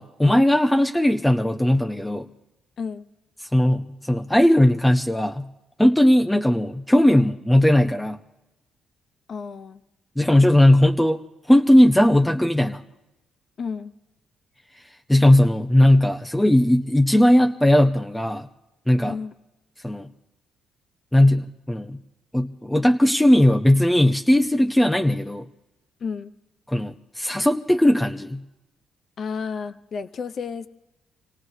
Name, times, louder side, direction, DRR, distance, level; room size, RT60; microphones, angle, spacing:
voice 1, 0.0-2.3 3.5-5.5 5.8-8.2 10.2-11.2 11.5-12.8 15.1-18.5 18.9-19.1 19.8-20.1 21.1-22.0 22.3-25.5 26.7-28.4, left 1 dB, 5° left, 5 dB, 0.7 m, -18 dB
voice 2, 9.3-9.8 13.6-13.9 19.0-19.3 26.0-26.3 29.2-30.7, left 5 dB, 55° left, 10 dB, 0.7 m, -31 dB
28.0 x 17.5 x 2.7 m, 0.97 s
cardioid pair, 90°, 0 cm